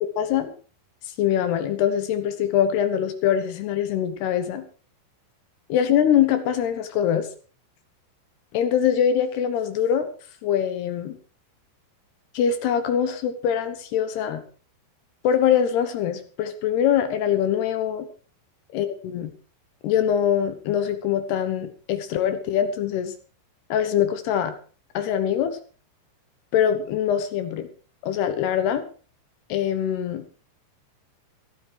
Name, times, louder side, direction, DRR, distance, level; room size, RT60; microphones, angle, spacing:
voice 1, 0.2-0.5 1.2-4.6 5.7-7.3 8.5-10.1 10.4-11.2 12.3-14.4 15.2-18.1 18.7-19.3 19.8-23.1 23.7-24.5 24.9-25.6 26.5-27.7 28.0-28.8 29.5-30.2, left 9 dB, 70° left, 10 dB, 2.9 m, -23 dB
15.0 x 12.5 x 4.7 m, 0.39 s
omnidirectional pair, 5.4 m